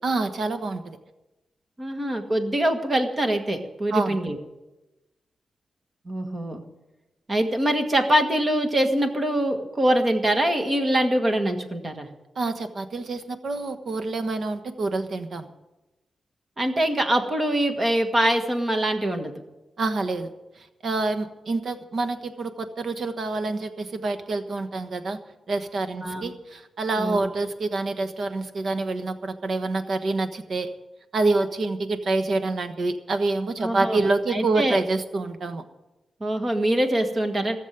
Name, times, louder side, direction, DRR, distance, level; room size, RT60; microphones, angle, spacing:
voice 1, 0.0-1.0 3.9-4.2 12.4-15.5 19.8-20.3 20.6-25.2 25.5-30.7 31.1-35.6, right 3 dB, 55° right, 8 dB, 1.2 m, -27 dB
voice 2, 1.8-4.4 6.0-6.6 7.3-12.1 16.6-19.4 26.0-26.2 27.0-27.3 33.6-34.8 36.2-37.6, right 1 dB, 25° right, 5 dB, 1.6 m, -24 dB
17.5 x 7.4 x 9.2 m, 1.0 s
wide cardioid pair, 165°, 0 cm